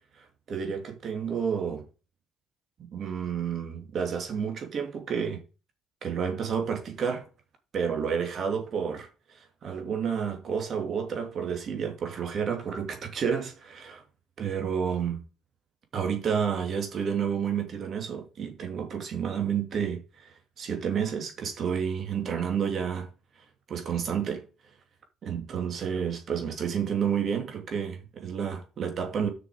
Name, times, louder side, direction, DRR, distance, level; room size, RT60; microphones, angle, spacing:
voice 1, 0.5-1.8 2.8-5.4 6.0-7.3 7.7-9.1 9.6-14.0 14.4-15.2 15.9-20.3 20.6-23.1 23.7-24.4 25.2-29.3, right 7 dB, 55° right, 2.7 m, -30 dB
7.1 x 6.0 x 5.1 m
supercardioid pair, 75°, 0 cm